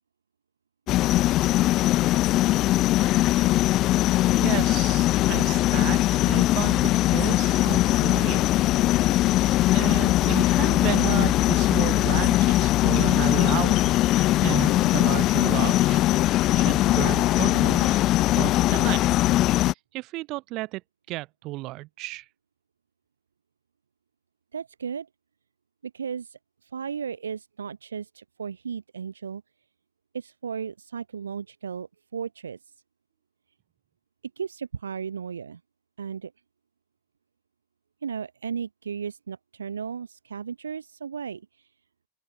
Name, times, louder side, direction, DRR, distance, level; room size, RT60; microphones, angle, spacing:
sound 1, 0.9-19.7, left 15 dB, 35° left, 1.9 m, -21 dB
voice 1, 4.4-9.2 9.7-14.0 14.4-16.0 16.5-18.0 18.3-19.0 19.9-20.8 21.1-22.2, right 20 dB, 40° right, 3.3 m, -33 dB
voice 2, 24.5-25.1 25.9-26.4 26.7-29.4 30.1-32.6 34.4-35.6 36.0-36.3 38.0-41.4, right 6 dB, 70° right, 1.4 m, -35 dB
open air
figure-of-eight pair, 90°, 0 cm